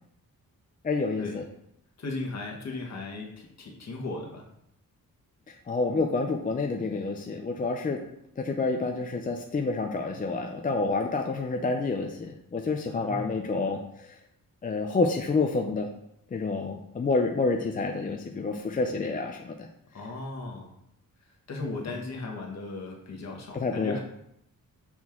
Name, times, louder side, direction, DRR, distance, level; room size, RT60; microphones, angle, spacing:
voice 1, 0.8-1.4 5.7-8.0 8.4-13.8 14.6-15.9 16.3-19.7 23.5-24.0, left 3 dB, 25° left, 2 dB, 0.3 m, -28 dB
voice 2, 2.0-4.4 12.9-13.8 19.9-20.7 21.5-24.0, left 3 dB, 50° left, 0 dB, 1.3 m, -37 dB
6.1 x 4.3 x 3.6 m, 0.75 s
wide cardioid pair, 175°, 35 cm